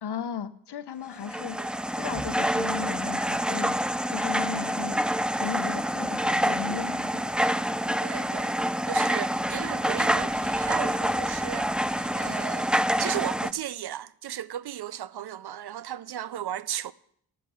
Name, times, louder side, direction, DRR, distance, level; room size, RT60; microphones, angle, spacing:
voice 1, 0.0-1.6 2.0-3.8 4.1-5.0 5.4-7.4 12.2-12.4, left 7 dB, 70° left, 0.8 m, -36 dB
sound 1, 1.1-13.5, equal, ahead, 0.3 m, -27 dB
voice 2, 7.9-8.5 8.9-16.9, right 11 dB, 70° right, 0.5 m, -35 dB
13.0 x 6.7 x 6.6 m
cardioid pair, 60°, 41 cm